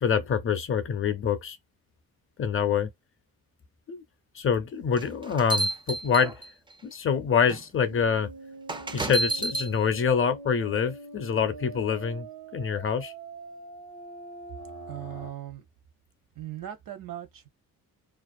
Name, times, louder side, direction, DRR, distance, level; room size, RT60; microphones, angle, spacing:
voice 1, 0.0-1.6 2.4-2.9 3.9-4.0 4.3-6.3 6.8-8.3 8.9-12.3 12.5-13.1, left 7 dB, 35° left, 0.5 m, -26 dB
sound 1, 4.9-6.7 7.5-7.6 8.7-9.7, right 2 dB, 15° right, 0.3 m, -30 dB
sound 2, 7.9-15.3, right 3 dB, 90° right, 1.0 m, -43 dB
voice 2, 14.9-15.7 16.4-17.5, right 12 dB, 65° right, 0.7 m, -39 dB
2.4 x 2.0 x 2.4 m
cardioid pair, 90°, 36 cm